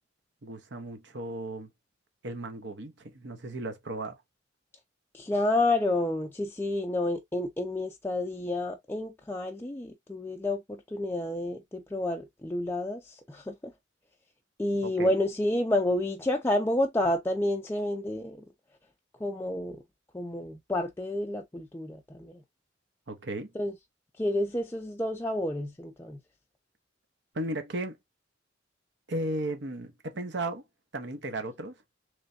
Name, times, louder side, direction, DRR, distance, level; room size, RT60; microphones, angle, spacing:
voice 1, 0.4-1.7 2.2-4.2 14.8-15.2 23.1-23.5 27.3-28.0 29.1-30.6 30.9-31.8, right 1 dB, 65° right, 0.9 m, -35 dB
voice 2, 5.1-13.7 14.6-18.5 19.2-19.8 20.1-22.4 23.5-23.7 24.2-26.2, left 1 dB, 10° left, 0.4 m, -30 dB
3.2 x 3.2 x 2.6 m
head